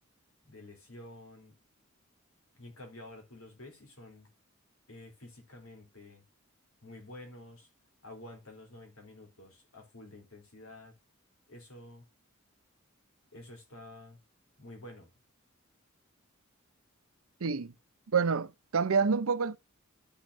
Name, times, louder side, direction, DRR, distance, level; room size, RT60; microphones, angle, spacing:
voice 1, 0.4-1.6 2.6-4.3 4.9-6.2 6.8-7.7 8.0-10.9 11.5-12.1 13.3-14.2 14.6-15.1, left 1 dB, 85° left, 3.7 m, -50 dB
voice 2, 17.4-17.7 18.1-19.6, right 5 dB, 80° right, 0.6 m, -28 dB
13.0 x 6.1 x 2.6 m
head